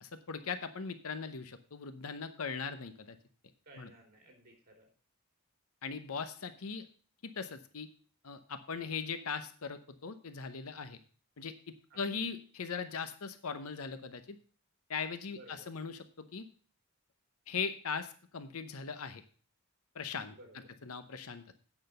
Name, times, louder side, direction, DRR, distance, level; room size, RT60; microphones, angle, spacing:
voice 1, 0.0-3.2 3.8-3.9 5.8-6.9 7.2-7.9 8.2-11.0 11.4-11.5 12.0-14.4 14.9-16.5 17.5-19.2 19.9-20.3 20.8-21.5, left 5 dB, 75° left, 10 dB, 0.8 m, -39 dB
voice 2, 3.6-4.9 11.9-12.1 15.3-15.7 20.3-20.7, right 1 dB, 45° right, 2 dB, 3.4 m, -56 dB
8.9 x 6.1 x 6.5 m, 0.41 s
head